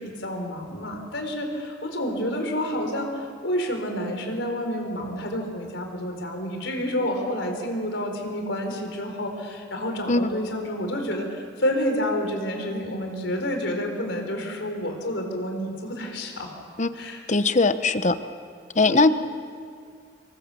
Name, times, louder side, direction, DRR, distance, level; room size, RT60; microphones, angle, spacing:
voice 1, 0.0-16.5 16.9-17.2 18.8-19.1, equal, 80° left, 3 dB, 4.3 m, -29 dB
voice 2, 17.3-18.2 18.8-19.1, left 3 dB, 40° left, 11 dB, 0.9 m, -20 dB
26.5 x 22.5 x 7.1 m, 2.2 s
head